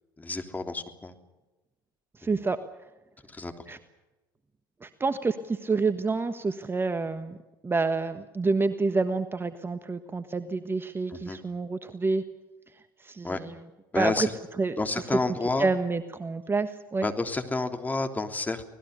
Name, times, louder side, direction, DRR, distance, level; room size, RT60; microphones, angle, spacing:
voice 1, 0.2-1.1 3.3-3.5 11.1-11.4 13.2-13.4 13.9-14.3 14.8-15.7 17.0-18.6, left 3 dB, 15° left, 5 dB, 3.2 m, -30 dB
voice 2, 2.2-2.6 3.7-3.8 4.8-7.4 7.6-12.2 13.0-13.5 13.9-14.3 14.6-14.8 15.6-17.1, right 4 dB, 20° right, 11 dB, 1.3 m, -28 dB
25.5 x 19.0 x 6.9 m, 1.1 s
hypercardioid pair, 70°, 12 cm